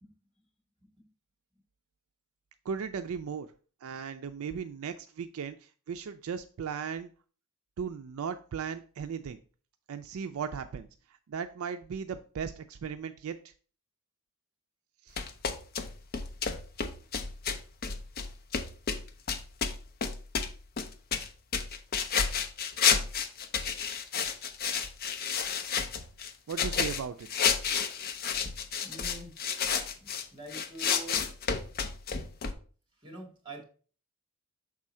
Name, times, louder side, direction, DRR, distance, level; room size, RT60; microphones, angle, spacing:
voice 1, 2.6-3.5 3.8-7.1 7.8-9.4 9.9-13.5 15.0-15.2 24.2-24.4 26.5-27.5, right 6 dB, 70° right, 9 dB, 0.4 m, -37 dB
sound 1, 15.2-30.2 30.5-32.5, left 6 dB, 45° left, 0.6 m, -31 dB
voice 2, 28.8-29.3 29.9-31.2 33.0-33.6, right 1 dB, 20° right, 0 dB, 2.0 m, -45 dB
6.1 x 3.7 x 4.2 m, 0.39 s
head